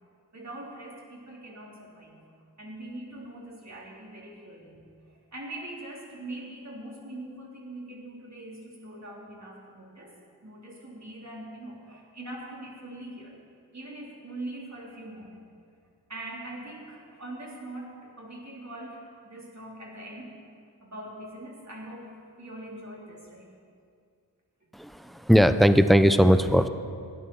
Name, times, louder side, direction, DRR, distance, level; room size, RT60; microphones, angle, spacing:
voice 1, 0.3-2.2 2.6-4.8 5.1-10.2 10.4-13.4 13.7-15.4 16.1-20.3 20.8-22.1 22.4-23.5, right 1 dB, 40° right, -3 dB, 3.5 m, -42 dB
voice 2, 24.7-26.7, equal, ahead, 11 dB, 0.7 m, -19 dB
13.0 x 9.1 x 7.0 m, 2.3 s
cardioid pair, 45°, 42 cm